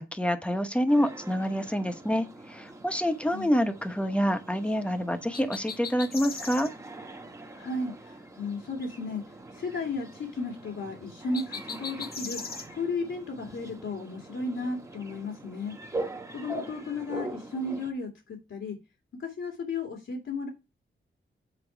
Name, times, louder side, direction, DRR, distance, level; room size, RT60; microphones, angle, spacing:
voice 1, 0.0-6.7, equal, 5° left, 1.1 m, -27 dB
sound 1, 0.9-17.9, right 2 dB, 15° right, 1.2 m, -43 dB
sound 2, 5.3-6.7 11.3-12.7, left 5 dB, 50° left, 1.0 m, -38 dB
voice 2, 7.5-15.7 16.3-18.8 19.2-20.5, left 3 dB, 80° left, 2.4 m, -34 dB
8.2 x 4.5 x 4.6 m
wide cardioid pair, 110°, 20 cm